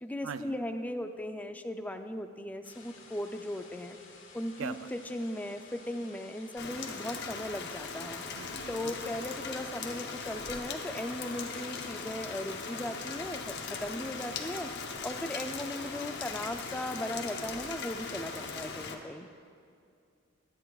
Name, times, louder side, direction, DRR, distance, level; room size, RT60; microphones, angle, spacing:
voice 1, 0.0-4.0 4.3-8.3 8.7-14.7 15.0-19.3, left 1 dB, 10° left, 7 dB, 0.4 m, -37 dB
sound 1, 2.6-11.8, left 4 dB, 75° left, 1.5 m, -54 dB
voice 2, 4.6-4.9 8.3-9.1 18.6-18.7, right 6 dB, 75° right, 12 dB, 0.4 m, -41 dB
Rain, 6.6-18.9, left 4 dB, 60° left, 0.9 m, -39 dB
21.0 x 10.0 x 2.4 m, 2.3 s
head